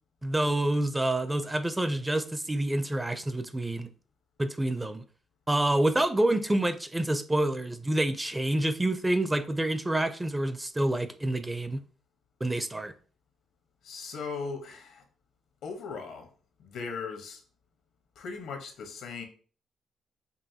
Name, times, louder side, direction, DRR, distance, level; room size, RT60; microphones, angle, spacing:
voice 1, 0.2-3.9 4.4-5.0 5.5-11.8 12.4-12.9, right 1 dB, 15° right, 0.4 m, -27 dB
voice 2, 13.8-15.0 15.6-16.3 16.6-17.4 18.2-19.2, left 5 dB, 80° left, 0.9 m, -38 dB
5.4 x 2.6 x 2.8 m
cardioid pair, 85°, 0 cm